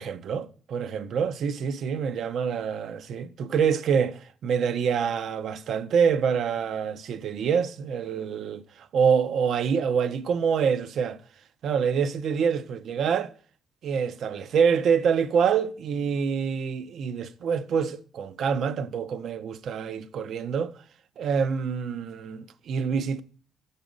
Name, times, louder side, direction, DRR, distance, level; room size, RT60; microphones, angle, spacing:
voice 1, 0.0-11.2 11.6-13.3 13.8-20.7 21.2-23.2, right 6 dB, 70° right, 0.4 m, -26 dB
6.0 x 4.0 x 5.0 m
cardioid pair, 90°, 0 cm